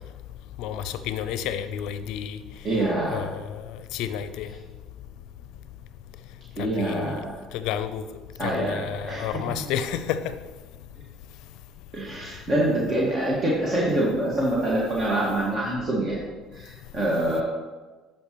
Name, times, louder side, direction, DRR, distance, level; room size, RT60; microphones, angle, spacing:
voice 1, 0.6-2.4 3.1-3.6 3.9-4.5 6.8-7.2 7.5-8.0 8.4-10.2, left 9 dB, 70° left, 11 dB, 0.5 m, -30 dB
voice 2, 2.6-3.3 6.6-7.4 8.4-9.4 11.9-16.2 16.5-17.4, right 1 dB, 40° right, -4 dB, 1.7 m, -25 dB
11.5 x 5.3 x 3.1 m, 1.3 s
hypercardioid pair, 65°, 0 cm